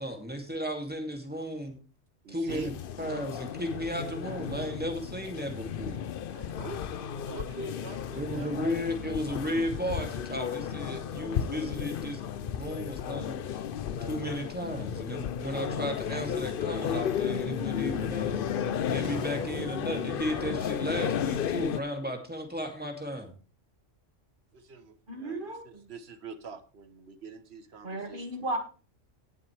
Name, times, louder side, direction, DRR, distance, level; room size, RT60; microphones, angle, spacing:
voice 1, 0.0-1.8 2.3-2.7 3.0-6.0 8.2-12.2 12.5-13.4 14.0-18.5 18.9-23.3, equal, 5° right, 2.4 m, -34 dB
voice 2, 2.2-2.7 6.3-8.6 24.5-28.5, right 4 dB, 55° right, 1.3 m, -44 dB
sound 1, 2.5-21.8, left 8 dB, 55° left, 0.7 m, -33 dB
sound 2, 19.0-20.2, left 1 dB, 20° left, 1.1 m, -43 dB
voice 3, 25.1-25.9 27.8-28.6, right 2 dB, 40° right, 2.1 m, -35 dB
18.5 x 7.2 x 3.3 m
omnidirectional pair, 1.3 m